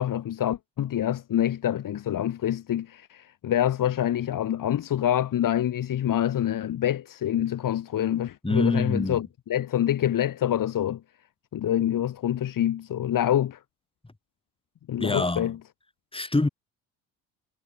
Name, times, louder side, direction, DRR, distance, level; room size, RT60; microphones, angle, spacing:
voice 1, 0.0-11.0 11.5-13.6 14.9-15.6, left 11 dB, 55° left, 3.0 m, -26 dB
voice 2, 8.4-9.2 15.0-15.5 16.1-16.5, left 2 dB, 15° left, 5.0 m, -25 dB
hypercardioid pair, 65°, 39 cm